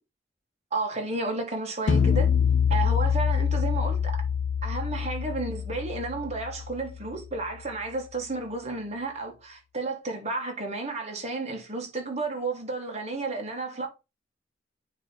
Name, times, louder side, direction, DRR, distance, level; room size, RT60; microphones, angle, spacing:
voice 1, 0.7-2.3 2.7-4.1 4.6-13.9, right 3 dB, 35° right, 1.5 m, -32 dB
sound 1, 1.9-7.2, left 7 dB, 65° left, 0.4 m, -25 dB
8.9 x 3.0 x 3.8 m
head